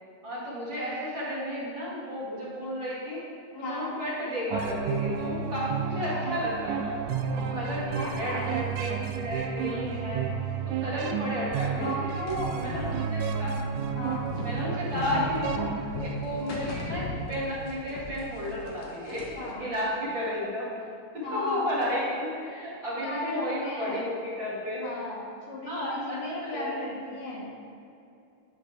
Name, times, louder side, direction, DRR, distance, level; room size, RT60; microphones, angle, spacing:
voice 1, 0.2-3.2 3.6-7.0 7.3-10.3 10.8-12.1 12.5-13.6 14.4-15.7 16.0-20.9 21.1-24.9 25.6-26.7, equal, 40° right, -8 dB, 2.7 m, -33 dB
voice 2, 3.5-4.0 6.1-6.3 7.9-8.6 11.7-12.9 13.9-14.3 19.3-19.7 21.2-21.7 23.0-24.1 24.8-27.5, left 1 dB, 80° left, -4 dB, 3.5 m, -35 dB
sound 1, 4.5-16.8, right 7 dB, 80° right, 2.0 m, -32 dB
sound 2, 12.3-17.7 18.0-19.5, left 2 dB, 60° left, 1.8 m, -37 dB
11.5 x 8.8 x 3.4 m, 2.6 s
omnidirectional pair, 3.7 m